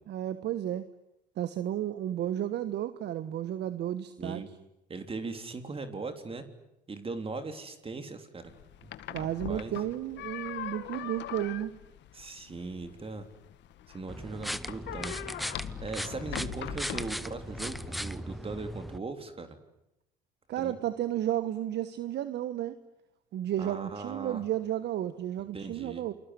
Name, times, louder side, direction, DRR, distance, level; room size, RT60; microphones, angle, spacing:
voice 1, 0.1-0.9 1.4-4.4 9.1-11.7 20.5-22.8 23.3-26.1, right 12 dB, 60° right, 12 dB, 1.4 m, -32 dB
voice 2, 4.2-4.5 4.9-6.4 6.9-8.5 9.1-9.7 12.1-13.3 13.9-19.6 20.6-20.7 23.6-24.4 25.5-26.0, right 3 dB, 30° right, 7 dB, 3.5 m, -39 dB
sound 1, 8.5-18.0, left 12 dB, 65° left, 1.9 m, -42 dB
sound 2, 14.1-19.0, equal, ahead, 1.0 m, -38 dB
28.5 x 21.5 x 9.8 m, 0.86 s
supercardioid pair, 80°, 20 cm